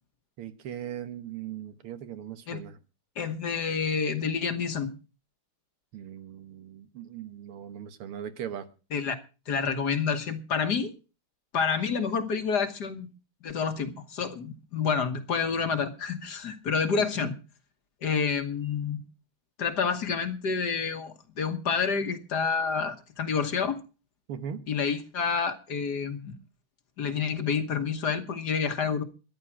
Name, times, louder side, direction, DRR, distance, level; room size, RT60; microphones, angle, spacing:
voice 1, 0.4-2.8 5.9-8.7 17.0-17.3 24.3-24.6, right 9 dB, 85° right, 2.1 m, -39 dB
voice 2, 3.2-4.9 8.9-9.2 9.5-10.9 11.5-13.1 13.4-17.3 18.0-19.0 19.6-23.8 24.7-26.4 27.0-29.0, left 6 dB, 55° left, 1.7 m, -28 dB
13.5 x 10.5 x 6.2 m
omnidirectional pair, 2.4 m